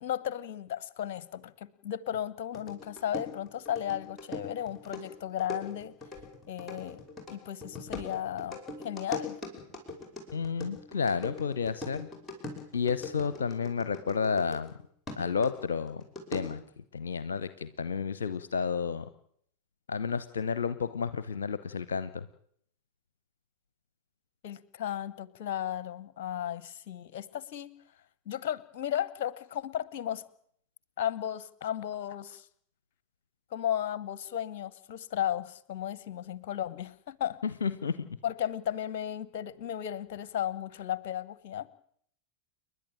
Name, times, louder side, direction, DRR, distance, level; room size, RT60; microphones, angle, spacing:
voice 1, 0.0-5.9 6.5-8.6 8.8-9.4 24.4-27.7 28.2-30.2 31.0-32.4 33.5-37.4 38.2-41.7, left 10 dB, 50° left, 19 dB, 1.1 m, -35 dB
sound 1, 2.5-14.7 15.1-16.7, left 2 dB, 10° left, 5.8 m, -41 dB
voice 2, 10.3-12.1 12.7-14.7 15.2-16.0 16.3-16.6 16.9-19.1 19.9-22.3 37.4-38.1, left 6 dB, 70° left, 14 dB, 0.8 m, -31 dB
29.5 x 11.0 x 8.9 m, 0.67 s
figure-of-eight pair, 90°, 0 cm